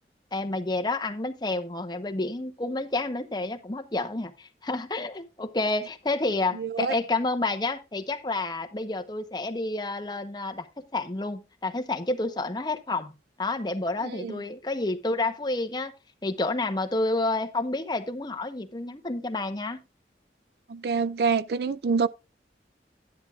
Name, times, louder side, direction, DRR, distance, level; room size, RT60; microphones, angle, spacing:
voice 1, 0.3-10.7 10.9-13.1 13.4-15.9 16.2-19.8, left 2 dB, 25° left, 0.9 m, -29 dB
voice 2, 6.5-7.0 14.0-14.4 20.7-22.1, right 5 dB, 60° right, 0.4 m, -26 dB
11.0 x 10.5 x 2.4 m
head